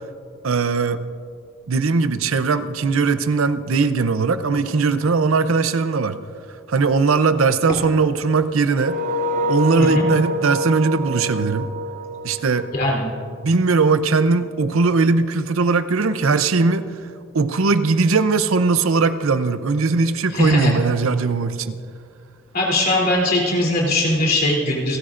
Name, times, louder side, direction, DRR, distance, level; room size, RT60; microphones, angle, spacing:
voice 1, 0.4-1.0 1.7-6.2 6.7-9.0 9.5-11.7 12.2-12.7 13.4-17.0 17.3-21.8, right 4 dB, 80° right, 11 dB, 0.6 m, -19 dB
sound 1, 8.7-13.6, equal, 35° right, 0.8 m, -26 dB
voice 2, 12.7-13.0 20.3-20.8 22.5-25.0, left 1 dB, 45° left, -3 dB, 3.2 m, -20 dB
29.0 x 13.5 x 2.5 m, 2.3 s
head